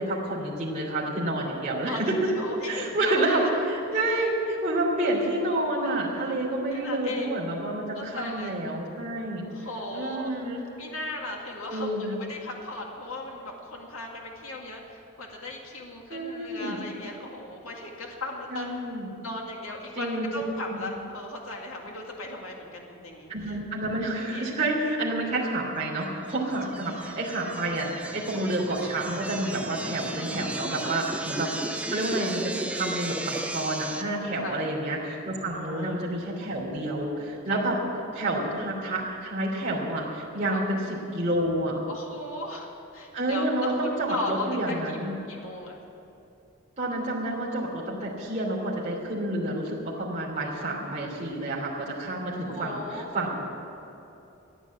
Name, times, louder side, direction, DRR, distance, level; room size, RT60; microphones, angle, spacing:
voice 1, 0.0-2.3 2.7-9.4 9.9-10.6 11.7-12.2 16.1-16.8 18.5-19.2 19.9-20.8 23.3-31.5 31.9-37.8 38.1-41.8 43.1-45.2 46.8-53.6, right 1 dB, 35° right, -6 dB, 3.0 m, -29 dB
voice 2, 1.8-3.5 3.9-4.2 4.9-5.2 6.7-7.3 7.9-8.5 9.5-10.4 10.8-18.7 19.2-23.5 24.3-24.5 26.9-27.0 30.7-31.0 34.4-34.6 35.5-36.0 37.5-37.6 40.5-40.6 41.9-45.8 52.5-53.1, left 2 dB, 90° left, 0 dB, 2.0 m, -37 dB
sound 1, 26.3-34.0, right 2 dB, 5° right, 0.6 m, -35 dB
14.5 x 10.0 x 8.4 m, 2.9 s
head